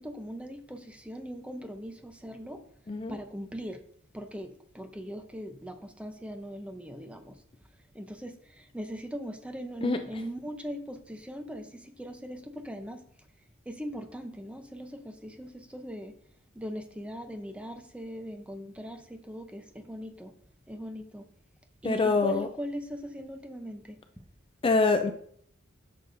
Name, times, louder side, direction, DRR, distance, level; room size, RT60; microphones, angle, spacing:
voice 1, 0.0-2.6 3.1-3.8 4.1-7.3 7.9-13.0 13.7-16.1 16.6-20.3 20.7-21.3 21.8-24.0, equal, 5° right, 6 dB, 0.7 m, -40 dB
voice 2, 21.8-22.5 24.6-25.1, left 3 dB, 25° left, 6 dB, 0.4 m, -24 dB
11.0 x 6.6 x 2.6 m, 0.64 s
head